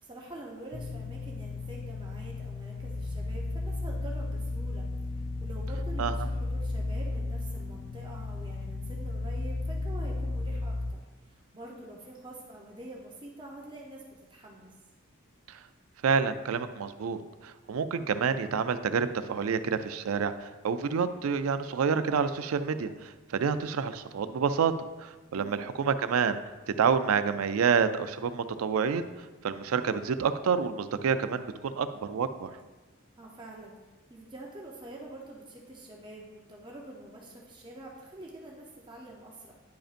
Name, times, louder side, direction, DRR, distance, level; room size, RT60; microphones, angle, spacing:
voice 1, 0.0-4.9 5.1-11.0 11.3-14.7 25.3-25.7 33.2-33.8 34.1-39.5, right 1 dB, 20° right, -2 dB, 0.7 m, -46 dB
sound 1, 0.7-10.9, left 2 dB, 35° left, 0.3 m, -34 dB
voice 2, 16.0-24.7 25.0-26.4 26.8-29.1 29.4-32.5, right 6 dB, 90° right, 11 dB, 0.4 m, -28 dB
10.0 x 5.1 x 2.5 m, 1.2 s
head